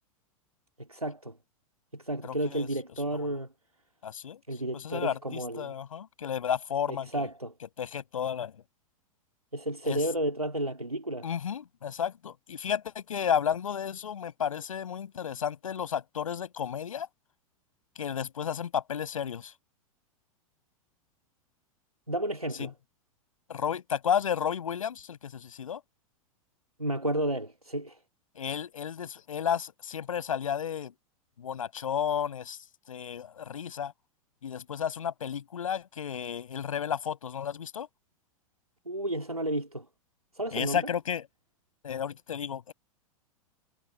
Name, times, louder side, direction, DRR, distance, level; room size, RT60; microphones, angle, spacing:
voice 1, 0.8-1.4 1.9-3.5 4.5-5.7 6.9-7.5 9.5-11.3 22.1-22.7 26.8-28.0 38.8-39.9 40.3-40.9, right 1 dB, 90° right, 2.9 m, -32 dB
voice 2, 2.2-2.7 3.1-3.3 4.0-4.4 4.7-7.3 7.8-8.6 9.8-10.0 11.2-17.1 18.0-19.5 22.6-22.7 23.5-25.8 28.4-30.9 31.4-32.6 32.9-33.9 34.4-37.9 40.5-41.3 41.8-42.7, left 8 dB, 70° left, 8.0 m, -32 dB
figure-of-eight pair, 95°, 18 cm